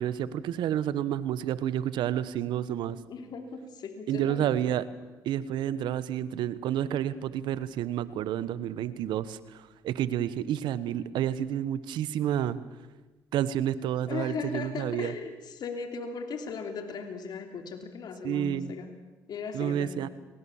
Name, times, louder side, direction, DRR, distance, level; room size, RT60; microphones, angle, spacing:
voice 1, 0.0-3.0 4.1-4.8 5.2-12.6 13.3-15.1 18.2-18.7 19.5-20.1, right 10 dB, 75° right, 15 dB, 1.2 m, -30 dB
voice 2, 2.7-4.6 14.1-18.9 19.3-20.1, left 5 dB, 60° left, 5 dB, 3.2 m, -37 dB
29.0 x 20.0 x 7.3 m, 1.2 s
supercardioid pair, 65°, 8 cm